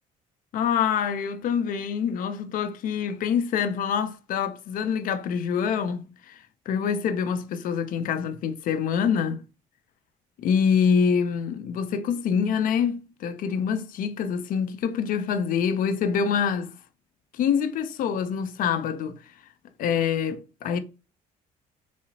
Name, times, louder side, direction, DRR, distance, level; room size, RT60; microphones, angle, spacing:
voice 1, 0.5-6.4 6.7-9.4 10.4-16.7 17.3-19.2 19.8-20.8, left 7 dB, 60° left, 0.5 m, -25 dB
3.7 x 2.0 x 2.7 m
supercardioid pair, 85°, 16 cm